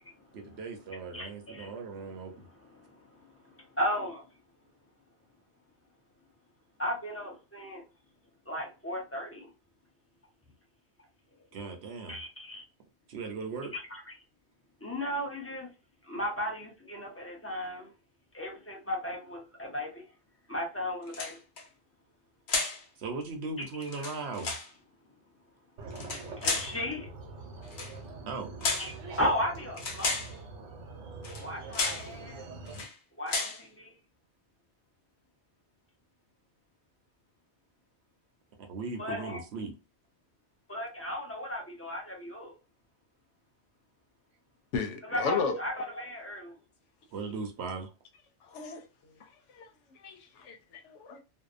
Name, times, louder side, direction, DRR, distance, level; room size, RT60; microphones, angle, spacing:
voice 1, 0.3-2.3 11.5-12.2 13.1-13.7 23.0-24.5 28.3-28.5 38.7-39.7 47.1-47.9, right 4 dB, 70° right, 0.9 m, -38 dB
voice 2, 1.1-3.0 3.5-4.3 6.8-7.8 8.5-9.5 12.1-12.6 13.7-14.1 14.8-15.7 16.1-17.9 18.3-20.0 20.5-21.4 23.6-23.7 24.0-24.1 26.4-27.1 28.8-30.3 31.4-32.5 33.2-34.0 39.0-39.4 40.7-42.5 45.0-46.6, left 1 dB, 15° left, 0.6 m, -35 dB
sound 1, 21.1-21.6 22.5-22.8 23.8-24.7 25.9-26.8 27.7-27.9 28.6-29.0 29.8-30.3 31.2-31.5 31.7-32.1 32.7-32.9 33.3-33.6, left 4 dB, 65° left, 1.0 m, -32 dB
sound 2, 25.8-32.8, right 3 dB, 90° right, 1.1 m, -44 dB
voice 3, 44.7-45.5 48.5-48.8 49.5-49.7 50.0-51.2, left 5 dB, 90° left, 1.0 m, -33 dB
2.7 x 2.1 x 2.4 m
omnidirectional pair, 1.2 m